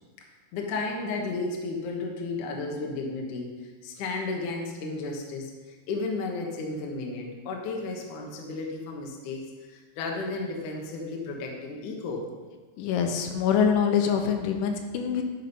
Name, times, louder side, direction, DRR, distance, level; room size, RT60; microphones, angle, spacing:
voice 1, 0.5-3.5 3.8-9.4 9.7-12.3, left 3 dB, 65° left, 0 dB, 2.0 m, -33 dB
voice 2, 12.8-15.2, left 7 dB, 85° left, 5 dB, 3.3 m, -24 dB
11.0 x 6.3 x 5.5 m, 1.3 s
omnidirectional pair, 5.5 m